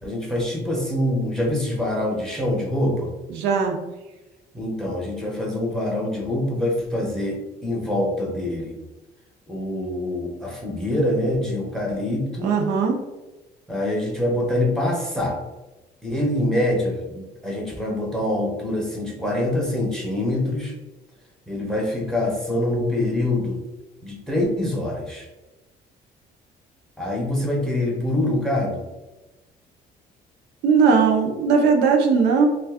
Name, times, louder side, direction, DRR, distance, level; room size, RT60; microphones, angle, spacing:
voice 1, 0.0-3.1 4.5-8.7 9.5-12.5 13.7-15.4 16.0-20.7 21.5-23.6 24.0-25.3 27.0-28.9, left 1 dB, 5° left, -1 dB, 0.6 m, -25 dB
voice 2, 3.3-3.8 12.4-13.0 30.6-32.5, right 5 dB, 85° right, 3 dB, 0.6 m, -18 dB
2.6 x 2.3 x 3.4 m, 1.1 s
cardioid pair, 110°, 17 cm